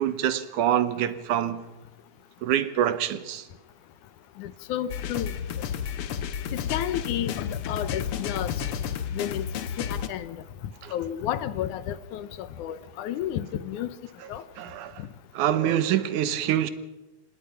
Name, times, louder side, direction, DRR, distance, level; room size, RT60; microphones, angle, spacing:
voice 1, 0.0-1.7 2.4-3.4 10.8-10.9 14.6-14.9 15.3-16.7, right 11 dB, 80° right, 2.5 m, -25 dB
voice 2, 4.4-5.4 6.5-8.6 9.1-9.5 9.8-10.4 10.9-13.9 14.3-14.4 15.0-15.1, left 11 dB, 80° left, 2.4 m, -31 dB
sound 1, 4.9-10.1, left 8 dB, 60° left, 1.6 m, -32 dB
26.0 x 19.5 x 5.8 m
omnidirectional pair, 3.5 m